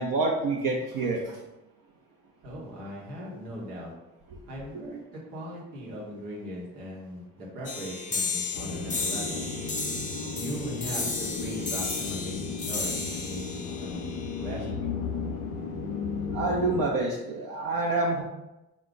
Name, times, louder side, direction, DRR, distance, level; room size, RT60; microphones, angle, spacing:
voice 1, 0.0-1.4 4.3-4.4 16.3-18.2, right 3 dB, 50° right, -1 dB, 0.7 m, -27 dB
voice 2, 2.4-4.0 4.5-9.5 10.3-14.9, equal, 80° right, -3 dB, 1.1 m, -39 dB
sound 1, 7.6-14.7, left 3 dB, 20° left, 0.6 m, -34 dB
sound 2, 8.5-16.9, left 5 dB, 75° left, 0.6 m, -35 dB
3.8 x 2.4 x 3.7 m, 0.96 s
hypercardioid pair, 55°, 43 cm